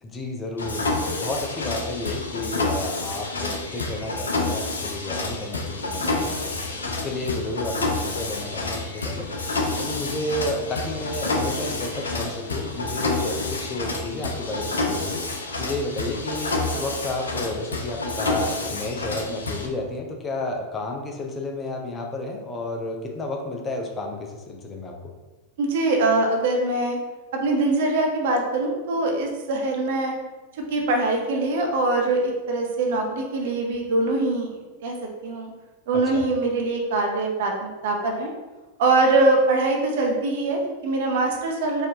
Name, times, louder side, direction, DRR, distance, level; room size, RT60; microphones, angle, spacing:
voice 1, 0.0-6.4 6.8-9.3 9.8-15.2 15.6-25.1 35.9-36.3, left 2 dB, 20° left, 1 dB, 0.5 m, -31 dB
Mechanisms, 0.6-19.7, left 2 dB, 70° left, 0.5 m, -28 dB
voice 2, 25.6-27.0 27.3-30.1 30.7-35.0 35.2-35.5 35.9-38.3 38.8-41.9, right 2 dB, 55° right, 2 dB, 0.6 m, -23 dB
4.1 x 2.5 x 2.9 m, 1.2 s
figure-of-eight pair, 90°, 0 cm